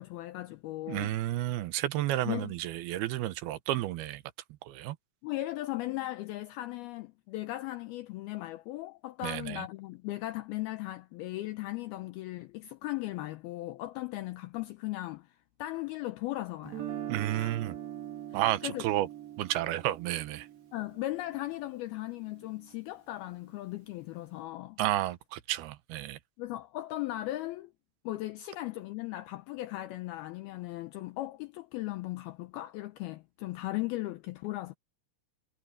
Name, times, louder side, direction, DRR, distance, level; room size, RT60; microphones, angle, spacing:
voice 1, 0.0-1.1 2.2-2.5 5.2-16.9 17.3-17.5 18.3-18.8 20.7-24.8 26.4-27.7 28.0-34.8, left 17 dB, 80° left, 2.4 m, -37 dB
voice 2, 0.9-4.2 4.6-5.0 9.2-9.7 17.1-17.8 18.3-19.1 19.4-20.5 24.8-26.2, right 14 dB, 75° right, 2.6 m, -31 dB
Guitar, 16.6-22.7, right 11 dB, 60° right, 4.6 m, -43 dB
omnidirectional pair, 5.0 m